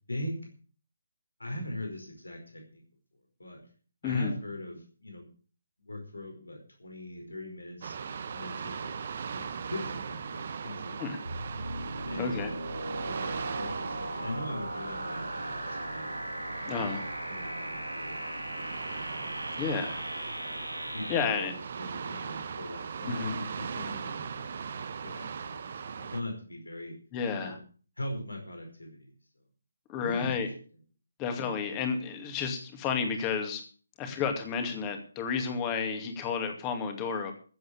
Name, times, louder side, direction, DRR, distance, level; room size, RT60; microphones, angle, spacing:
voice 1, 0.1-0.4 1.4-2.8 3.4-3.6 4.0-5.3 5.8-8.0 8.3-8.9 9.3-11.2 12.1-16.1 17.3-18.6 19.1-19.6 20.9-24.7 25.0-26.9 27.4-27.5 28.0-29.1 30.0-30.3, left 1 dB, 70° left, 2 dB, 5.1 m, -41 dB
voice 2, 4.0-4.3 11.0-11.2 12.2-12.5 16.7-17.0 19.6-20.0 21.1-21.5 23.1-23.4 27.1-27.6 29.9-30.5 31.2-33.6 34.0-37.3, left 6 dB, 15° left, 5 dB, 2.3 m, -31 dB
sound 1, 7.8-26.2, right 6 dB, 40° right, 1.1 m, -39 dB
sound 2, 11.3-21.3, right 1 dB, 90° right, 2.2 m, -38 dB
15.0 x 7.8 x 7.2 m, 0.40 s
figure-of-eight pair, 145°, 0 cm